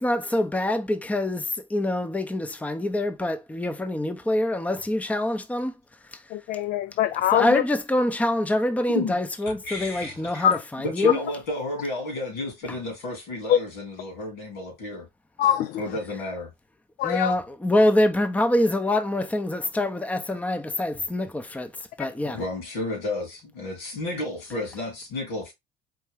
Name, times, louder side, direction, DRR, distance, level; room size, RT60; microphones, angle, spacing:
voice 1, 0.0-5.7 7.3-11.2 17.0-21.7 22.0-22.4, left 1 dB, 10° left, 0.7 m, -25 dB
voice 2, 6.3-7.6 10.4-10.6 13.5-13.6 15.4-15.7 17.0-17.3, left 10 dB, 60° left, 0.4 m, -22 dB
voice 3, 8.9-9.2 9.4-10.5 10.8-15.0 15.8-16.5 22.2-25.5, left 2 dB, 80° left, 2.9 m, -32 dB
4.5 x 2.7 x 3.5 m
supercardioid pair, 75°, 17 cm